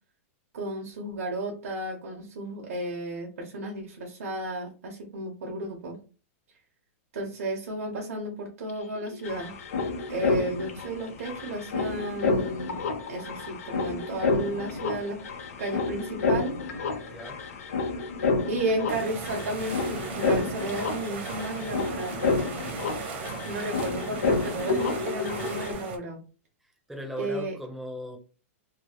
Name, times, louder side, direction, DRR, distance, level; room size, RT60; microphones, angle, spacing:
voice 1, 0.5-6.0 7.1-9.5 10.1-12.8 13.1-15.2 15.6-16.6 18.5-22.2 23.4-26.2 27.2-27.6, right 1 dB, 80° right, 0 dB, 1.0 m, -33 dB
sound 1, 8.7-8.8 8.9-25.7, left 4 dB, 85° left, 0.8 m, -30 dB
voice 2, 17.0-17.4 23.4-23.7 26.9-28.2, equal, ahead, 1 dB, 0.4 m, -38 dB
sound 2, 18.9-26.0, right 5 dB, 50° right, 0.7 m, -37 dB
3.0 x 2.3 x 2.9 m, 0.35 s
supercardioid pair, 170°, 8 cm